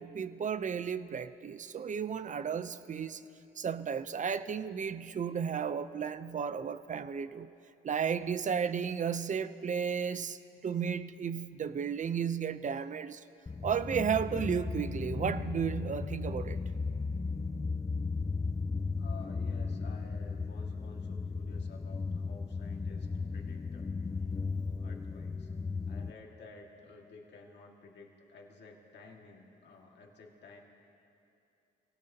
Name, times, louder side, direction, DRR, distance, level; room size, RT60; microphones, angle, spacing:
voice 1, 0.0-3.2 3.6-7.5 7.8-13.2 13.6-16.6, right 7 dB, 40° right, 13 dB, 0.6 m, -33 dB
sound 1, 13.5-26.1, left 4 dB, 15° left, 0.4 m, -36 dB
voice 2, 19.0-23.9 24.5-25.5 25.9-30.6, left 3 dB, 60° left, 0 dB, 2.0 m, -53 dB
27.0 x 17.5 x 2.9 m, 2.7 s
cardioid pair, 90°, 20 cm